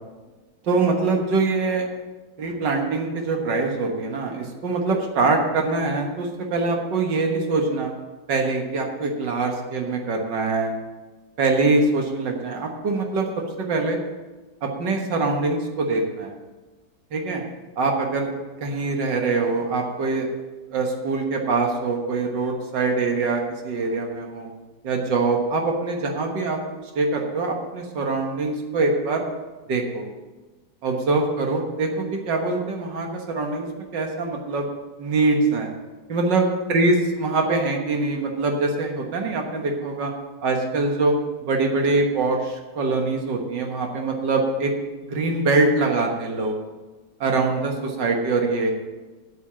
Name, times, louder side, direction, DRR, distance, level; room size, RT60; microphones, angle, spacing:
voice 1, 0.6-1.9 2.4-7.9 8.3-10.7 11.4-13.3 13.6-14.0 14.6-16.3 17.1-17.4 17.8-18.3 18.6-20.3 20.7-24.5 24.8-26.6 27.0-29.2 29.7-30.0 30.8-34.7 35.0-35.7 36.1-40.1 40.4-41.1 41.4-44.7 45.0-46.6 47.2-48.7, right 3 dB, 80° right, 2 dB, 2.1 m, -23 dB
8.6 x 8.1 x 7.5 m, 1.2 s
omnidirectional pair, 1.9 m